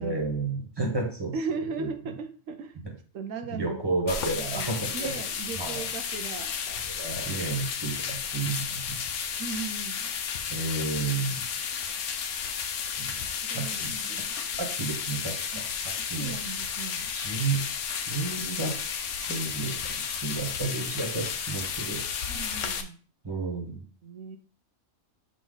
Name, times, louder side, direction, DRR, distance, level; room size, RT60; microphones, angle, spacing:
voice 1, 0.0-1.3 1.8-1.9 3.5-5.1 5.6-5.8 6.9-9.0 10.5-11.4 13.0-13.2 13.5-13.9 14.6-15.6 16.1-16.3 17.1-17.6 17.9-18.7 19.2-19.8 20.2-22.0 23.2-23.8, right 3 dB, 20° right, 1 dB, 1.4 m, -31 dB
voice 2, 1.3-2.8 3.1-3.8 4.3-6.6 9.4-10.1 13.2-14.6 15.5-15.6 16.0-17.1 22.3-23.0 24.0-24.4, right 4 dB, 85° right, 6 dB, 1.1 m, -37 dB
sound 1, 4.1-22.8, left 7 dB, 75° left, 1.0 m, -33 dB
7.5 x 3.7 x 3.9 m, 0.42 s
omnidirectional pair, 1.3 m